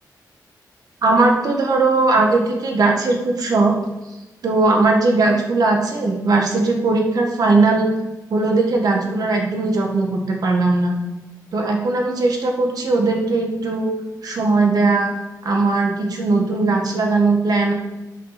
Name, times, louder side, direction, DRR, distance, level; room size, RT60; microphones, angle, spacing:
voice 1, 1.0-3.7 4.4-7.9 8.3-10.9 11.5-13.9 14.2-15.1 15.4-17.7, right 3 dB, 65° right, 1 dB, 1.7 m, -18 dB
10.0 x 5.6 x 5.8 m, 1.0 s
wide cardioid pair, 160°, 7 cm